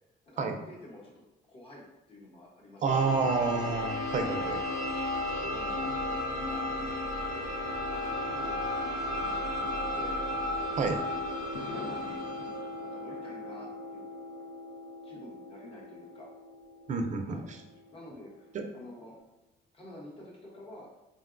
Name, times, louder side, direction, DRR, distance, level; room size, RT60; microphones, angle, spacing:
voice 1, 0.3-1.2 1.5-1.8 2.1-3.2 4.1-4.5 4.9-6.0 6.3-6.6 7.2-7.5 7.9-8.9 9.8-10.2 11.7-12.2 12.8-14.1 15.0-16.3 17.3-17.5 17.9-19.2 19.7-20.9, left 1 dB, 30° left, -4 dB, 0.8 m, -49 dB
voice 2, 2.8-4.6 10.8-11.0 16.9-17.6 18.5-18.7, right 4 dB, 40° right, 5 dB, 0.4 m, -29 dB
sound 1, 2.9-18.5, left 1 dB, 5° left, 0.9 m, -35 dB
sound 2, 9.2-11.0 11.5-13.8, left 3 dB, 85° left, 0.5 m, -48 dB
3.5 x 2.1 x 2.4 m, 1.0 s
cardioid pair, 120°, 19 cm